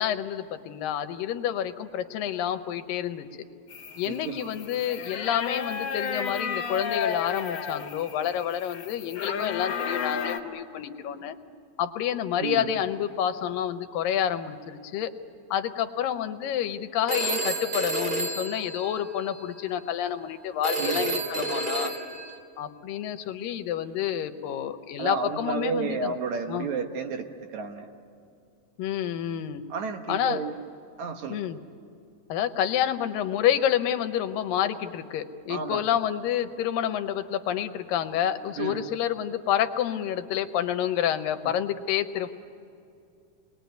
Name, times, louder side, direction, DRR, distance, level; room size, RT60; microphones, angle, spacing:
voice 1, 0.0-3.3 4.0-11.4 11.8-15.1 15.5-21.9 22.6-26.1 26.5-26.7 28.8-29.6 30.1-30.4 31.3-31.6 32.3-42.3, left 10 dB, 85° left, 9 dB, 2.6 m, -28 dB
sound 1, 3.7-10.4, left 6 dB, 55° left, 1.3 m, -33 dB
voice 2, 4.1-4.5 12.4-12.7 20.8-21.1 25.0-27.3 27.5-27.9 29.7-30.5 31.0-31.5 35.5-35.8 38.6-38.9, right 5 dB, 65° right, 5 dB, 2.4 m, -31 dB
Telephone, 17.1-19.4 20.6-22.4, right 2 dB, 15° right, 2.2 m, -30 dB
28.5 x 21.0 x 9.3 m, 2.5 s
omnidirectional pair, 3.9 m